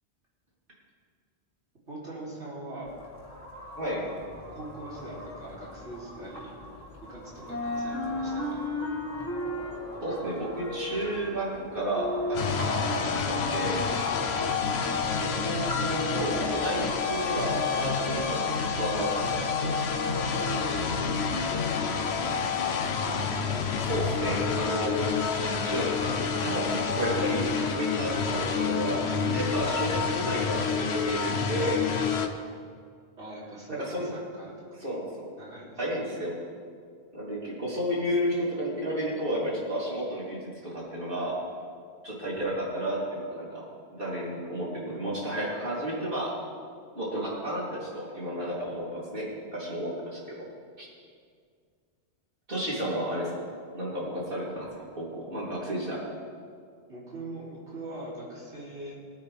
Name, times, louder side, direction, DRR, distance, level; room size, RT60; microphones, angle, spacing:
voice 1, 1.9-3.0 3.9-4.2 4.5-6.5 7.1-8.6 14.2-14.4 20.4-22.8 33.2-34.5 35.4-35.8 56.9-58.9, right 1 dB, 85° right, -7 dB, 3.8 m, -42 dB
sound 1, 2.8-21.0, equal, 30° left, 2.4 m, -44 dB
sound 2, 4.3-7.1 7.4-15.5, left 2 dB, 15° left, 1.2 m, -36 dB
voice 2, 10.0-13.8 15.2-19.9 23.8-25.3 25.6-31.8 33.8-34.1 34.8-35.0 35.8-36.3 37.1-41.3 42.0-43.6 43.9-46.3 47.0-50.4 50.8-50.9 52.5-53.4 53.7-54.7 55.0-56.0, right 1 dB, 50° right, -7 dB, 3.8 m, -32 dB
sound 3, 12.3-32.3, left 5 dB, 70° left, 1.1 m, -28 dB
20.0 x 8.9 x 3.6 m, 2.1 s
omnidirectional pair, 1.1 m